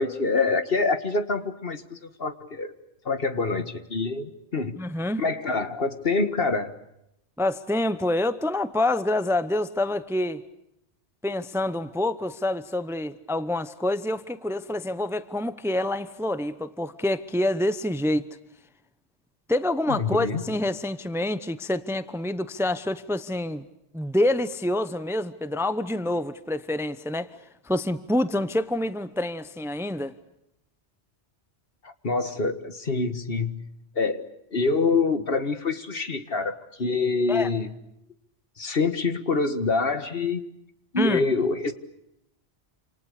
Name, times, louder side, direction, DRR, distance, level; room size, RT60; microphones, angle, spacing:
voice 1, 0.0-2.7 3.1-4.7 5.2-6.7 19.9-20.4 31.8-33.7 34.0-37.7 38.6-40.4 40.9-41.7, left 4 dB, 55° left, 1.9 m, -26 dB
voice 2, 4.8-5.2 7.4-10.4 11.2-18.3 19.5-23.6 23.9-27.3 27.6-30.1 37.3-37.5 41.0-41.2, left 1 dB, 5° right, 0.8 m, -27 dB
28.0 x 28.0 x 6.7 m
omnidirectional pair, 1.1 m